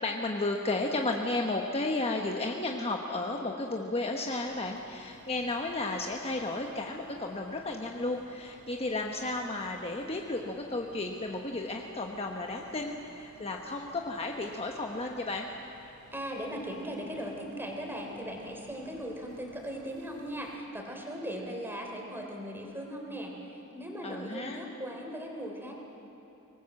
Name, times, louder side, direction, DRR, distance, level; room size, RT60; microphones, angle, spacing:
voice 1, 0.0-15.5 24.0-24.6, left 2 dB, 25° left, 2 dB, 1.1 m, -33 dB
sound 1, 4.4-20.6, right 1 dB, 85° right, 3.5 m, -57 dB
voice 2, 16.1-25.7, equal, 10° right, 1 dB, 3.4 m, -38 dB
24.0 x 19.0 x 7.7 m, 2.9 s
head